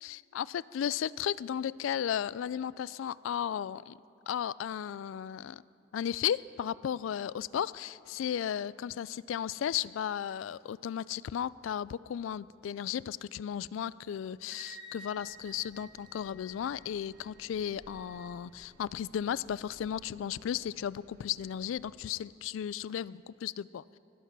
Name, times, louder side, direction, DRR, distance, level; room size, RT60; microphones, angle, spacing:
voice 1, 0.0-4.0 4.3-5.6 5.9-24.0, left 9 dB, 80° left, 20 dB, 0.3 m, -35 dB
Wind instrument woodwind instrument, 14.5-18.4, equal, 85° right, 2.4 m, -52 dB
sound 1, 15.1-21.9, equal, 50° right, 2.8 m, -60 dB
23.0 x 8.1 x 6.1 m, 2.8 s
head